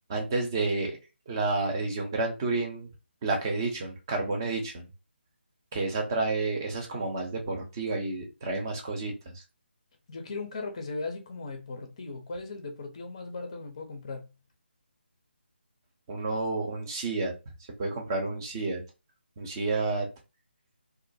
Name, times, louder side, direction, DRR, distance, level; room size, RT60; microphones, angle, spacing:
voice 1, 0.1-1.0 1.3-2.9 3.2-4.9 5.7-9.4 16.1-17.3 17.8-18.8 19.4-20.1, right 3 dB, 20° right, 0.5 m, -30 dB
voice 2, 10.1-14.3, left 3 dB, 30° left, 0.5 m, -38 dB
2.4 x 2.1 x 2.6 m
figure-of-eight pair, 150°, 6 cm